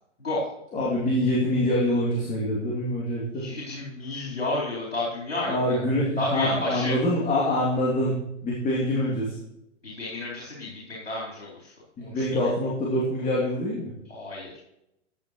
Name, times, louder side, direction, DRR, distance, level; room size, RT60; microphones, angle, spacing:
voice 1, 0.7-3.5 5.5-8.1 8.4-9.4 12.0-13.9, left 1 dB, 20° left, -5 dB, 2.7 m, -25 dB
voice 2, 3.4-5.8 6.2-6.9 9.8-11.7 12.0-12.2 14.1-14.6, left 2 dB, 80° left, -6 dB, 4.2 m, -31 dB
15.0 x 9.4 x 3.1 m, 0.82 s
figure-of-eight pair, 105°, 37 cm